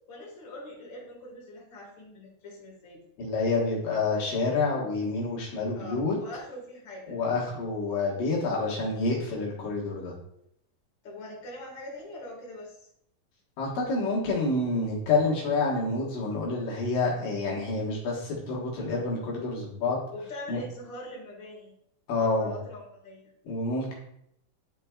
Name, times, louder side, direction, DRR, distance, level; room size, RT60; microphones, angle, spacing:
voice 1, 0.1-3.0 5.7-7.2 8.8-8.9 11.0-12.9 20.1-21.7 22.1-23.3, left 1 dB, 40° left, -4 dB, 2.4 m, -43 dB
voice 2, 3.2-6.1 7.1-10.1 13.6-20.0 20.5-20.6 22.1-22.5 23.5-23.9, left 3 dB, 75° left, -4 dB, 3.1 m, -28 dB
11.0 x 4.4 x 2.4 m, 0.75 s
omnidirectional pair, 3.9 m